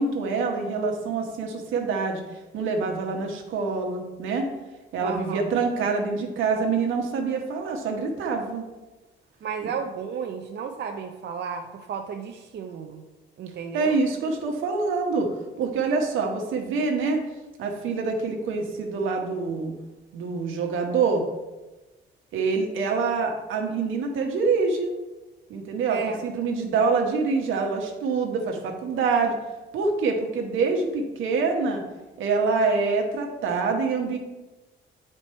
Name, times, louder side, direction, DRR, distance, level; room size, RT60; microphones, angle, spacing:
voice 1, 0.0-2.2 2.5-4.5 4.9-8.6 13.7-15.3 15.6-17.2 17.6-19.7 20.1-21.2 22.3-24.9 25.5-29.3 29.7-31.8 32.2-34.2, right 4 dB, 85° right, 2 dB, 1.2 m, -25 dB
voice 2, 5.0-5.4 9.4-13.0 13.4-14.0 25.9-26.2, right 6 dB, 60° right, 4 dB, 0.6 m, -33 dB
7.9 x 4.4 x 4.4 m, 1.1 s
cardioid pair, 90°, 20 cm